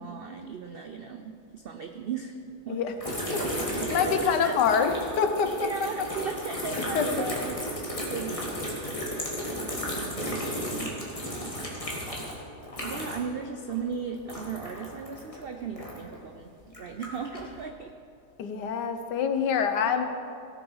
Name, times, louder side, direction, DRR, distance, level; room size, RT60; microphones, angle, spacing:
voice 1, 0.0-2.4 2.6-2.8 3.3-4.6 5.5-7.6 8.1-10.4 12.8-16.5 16.8-17.9, right 6 dB, 90° right, 5 dB, 0.5 m, -37 dB
sound 1, 3.0-13.4 13.6-16.2 16.7-17.5, equal, 20° left, 1.9 m, -34 dB
voice 2, 3.9-5.7 6.9-7.1 18.4-20.1, left 6 dB, 85° left, 8 dB, 1.5 m, -25 dB
17.5 x 7.0 x 5.6 m, 2.5 s
omnidirectional pair, 1.8 m